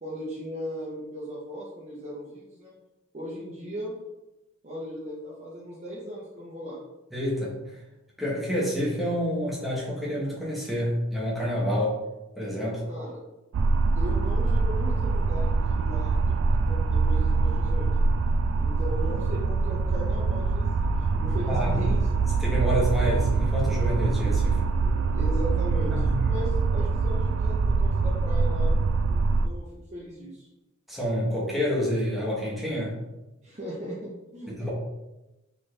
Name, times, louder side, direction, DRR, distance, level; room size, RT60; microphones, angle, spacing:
voice 1, 0.0-2.7 3.1-4.0 4.6-6.8 12.9-13.2 13.9-17.9 18.6-22.1 24.8-30.5 33.4-34.5, equal, 35° right, -6 dB, 0.9 m, -38 dB
voice 2, 7.1-7.5 8.2-12.0 12.3-12.9 21.2-21.8 22.4-24.6 25.9-26.3 30.9-33.0 34.5-34.7, equal, ahead, -6 dB, 1.2 m, -28 dB
sound 1, 13.5-29.5, right 4 dB, 70° right, 0.3 m, -24 dB
4.3 x 3.4 x 3.2 m, 0.99 s
head